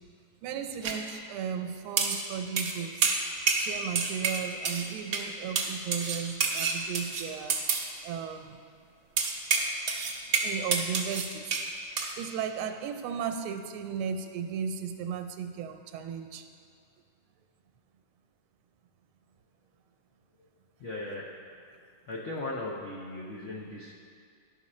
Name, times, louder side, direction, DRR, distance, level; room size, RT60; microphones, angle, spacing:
voice 1, 0.4-3.1 3.5-7.6 8.0-8.6 10.4-11.6 12.2-16.4, right 7 dB, 85° right, 7 dB, 1.5 m, -35 dB
sound 1, 0.8-1.0 2.0-2.2 2.6-2.8 3.0-3.7 3.9-4.9 5.1-5.3 5.5-7.9 9.2-11.7 12.0-12.1, right 5 dB, 60° right, 0.8 m, -28 dB
voice 2, 20.8-21.4 22.1-23.9, left 2 dB, 65° left, -4 dB, 0.7 m, -37 dB
11.0 x 5.8 x 4.2 m, 2.2 s
omnidirectional pair, 2.3 m